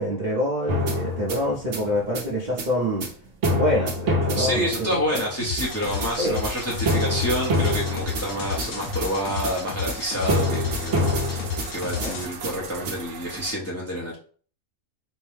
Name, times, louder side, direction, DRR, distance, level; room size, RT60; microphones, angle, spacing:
voice 1, 0.0-3.1 3.5-5.0 6.2-6.4 11.9-12.1, equal, 40° right, -5 dB, 0.7 m, -26 dB
sound 1, 0.7-13.0, left 1 dB, 60° right, 1.1 m, -26 dB
voice 2, 4.3-14.2, equal, 15° left, -3 dB, 0.7 m, -28 dB
sound 2, 5.4-12.2, left 6 dB, 65° left, 1.0 m, -32 dB
sound 3, 5.6-13.5, right 6 dB, 85° right, 1.1 m, -40 dB
4.4 x 2.2 x 3.2 m, 0.43 s
omnidirectional pair, 1.5 m